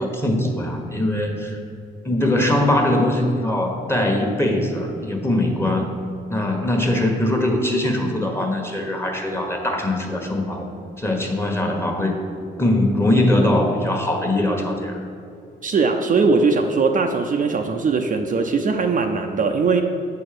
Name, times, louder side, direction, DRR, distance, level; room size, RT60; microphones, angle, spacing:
voice 1, 0.0-1.6 2.0-5.9 6.3-10.6 11.0-12.2 12.6-15.0, left 1 dB, 10° left, 2 dB, 1.4 m, -21 dB
voice 2, 15.6-19.8, right 4 dB, 40° right, 4 dB, 0.6 m, -20 dB
8.4 x 4.4 x 6.8 m, 2.5 s
cardioid pair, 90°, 20 cm